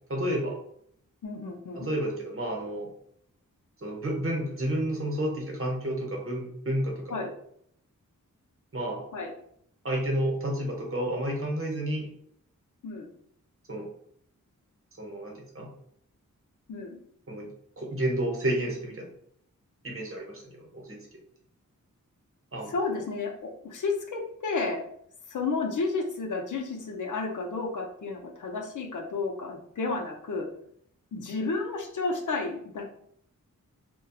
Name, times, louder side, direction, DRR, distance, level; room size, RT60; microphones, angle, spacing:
voice 1, 0.1-0.6 1.8-2.9 3.8-7.3 8.7-9.0 9.8-12.1 13.7-13.9 15.0-15.7 17.3-17.5 17.8-19.1 19.8-21.0 22.5-22.7, right 1 dB, 45° right, -1 dB, 0.9 m, -30 dB
voice 2, 1.2-1.9 7.1-7.3 9.1-9.3 12.8-13.1 16.7-17.0 22.7-24.9 25.3-30.5 31.1-32.8, left 3 dB, 65° left, 2 dB, 0.6 m, -32 dB
2.7 x 2.2 x 2.3 m, 0.67 s
cardioid pair, 50°, 32 cm